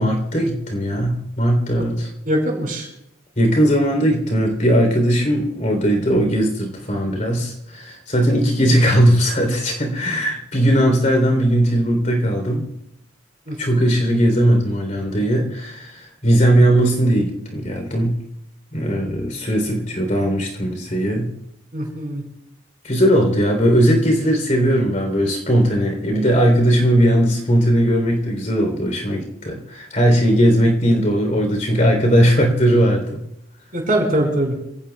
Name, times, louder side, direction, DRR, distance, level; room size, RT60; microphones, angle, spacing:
voice 1, 0.0-2.1 3.4-12.6 13.6-18.2 18.7-21.3 22.8-33.2, equal, 40° left, 3 dB, 3.5 m, -18 dB
voice 2, 2.3-2.9 8.7-8.8 13.5-13.8 21.7-22.2 33.7-34.6, right 1 dB, 45° right, 1 dB, 4.9 m, -22 dB
27.0 x 17.5 x 2.3 m, 0.80 s
head